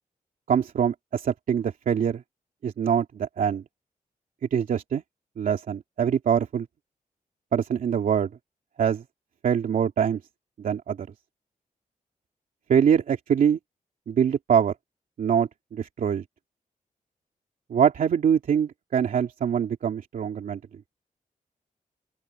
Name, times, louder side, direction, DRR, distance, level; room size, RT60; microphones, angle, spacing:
voice 1, 0.5-2.2 2.6-3.6 4.5-5.0 5.4-6.7 7.5-8.3 8.8-9.0 9.4-10.2 10.6-11.1 12.7-13.6 14.1-14.7 15.2-16.2 17.7-20.6, right 8 dB, 75° right, 2.7 m, -24 dB
open air
wide cardioid pair, 165°, 14 cm